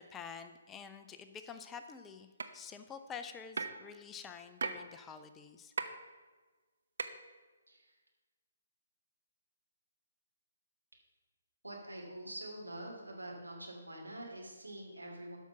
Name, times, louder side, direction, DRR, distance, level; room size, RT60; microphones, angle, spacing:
voice 1, 0.0-5.7, left 6 dB, 15° left, 8 dB, 0.5 m, -48 dB
sound 1, 2.4-2.5 3.6-3.8 4.6-4.8 5.8-5.9 7.0-7.1, right 4 dB, 60° right, 0.8 m, -35 dB
voice 2, 11.6-15.4, right 1 dB, 80° right, -1 dB, 2.9 m, -46 dB
12.5 x 5.8 x 5.8 m, 1.3 s
figure-of-eight pair, 135°, 0 cm